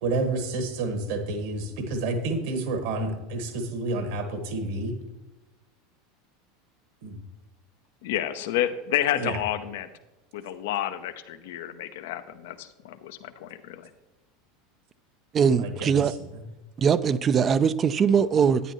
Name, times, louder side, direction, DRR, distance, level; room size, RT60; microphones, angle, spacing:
voice 1, 0.0-5.0 7.0-7.2 9.2-9.4 15.6-16.4, right 2 dB, 65° right, 1.7 m, -30 dB
voice 2, 8.0-9.9 10.3-13.9, left 11 dB, 65° left, 0.7 m, -30 dB
voice 3, 15.3-16.1 16.8-18.6, right 7 dB, 30° right, 0.4 m, -21 dB
11.0 x 9.8 x 3.1 m
figure-of-eight pair, 80°, 0 cm